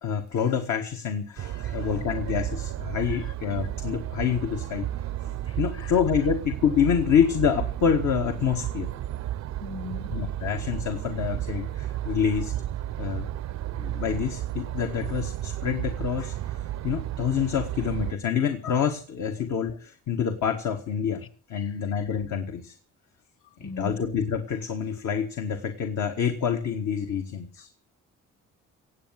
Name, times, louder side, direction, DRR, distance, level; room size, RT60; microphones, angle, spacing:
voice 1, 0.0-4.9 5.6-8.9 10.1-12.5 13.0-13.3 13.8-22.7 23.6-27.7, left 7 dB, 70° left, 1.8 m, -27 dB
sound 1, 1.4-18.1, right 13 dB, 65° right, 0.6 m, -33 dB
voice 2, 5.5-5.9 9.6-10.1 21.6-21.7 23.6-24.0, left 4 dB, 45° left, 1.4 m, -39 dB
17.5 x 8.2 x 7.6 m
cardioid pair, 90°, 30 cm